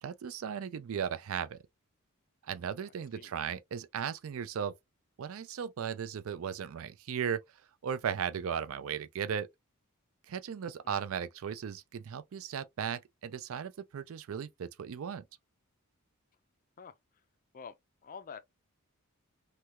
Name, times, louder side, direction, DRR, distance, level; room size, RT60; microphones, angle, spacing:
voice 1, 0.0-1.6 2.4-4.7 5.2-7.4 7.8-9.5 10.3-15.2, right 7 dB, 65° right, 0.4 m, -36 dB
voice 2, 2.8-3.3 10.8-11.0 16.8-16.9 17.5-17.8 18.0-18.4, left 6 dB, 35° left, 0.4 m, -47 dB
3.3 x 2.3 x 2.8 m
head